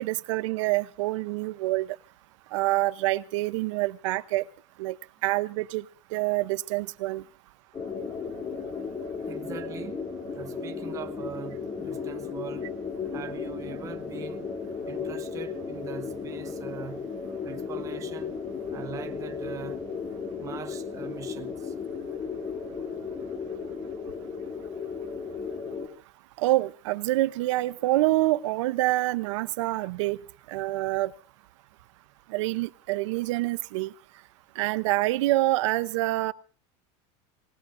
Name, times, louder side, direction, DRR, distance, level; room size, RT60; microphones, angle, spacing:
voice 1, 0.0-1.9 2.5-4.4 4.8-5.0 5.2-5.8 6.1-7.2 26.4-30.2 30.5-31.1 32.3-33.9 34.6-36.3, right 18 dB, 90° right, 0.7 m, -26 dB
sound 1, 7.7-25.9, left 5 dB, 20° left, 2.5 m, -35 dB
voice 2, 9.2-10.1 10.3-12.7 13.1-14.5 14.9-17.1 17.4-18.4 18.7-19.8 20.3-21.7, right 9 dB, 20° right, 0.9 m, -42 dB
27.5 x 19.0 x 2.6 m
cardioid pair, 170°, 15 cm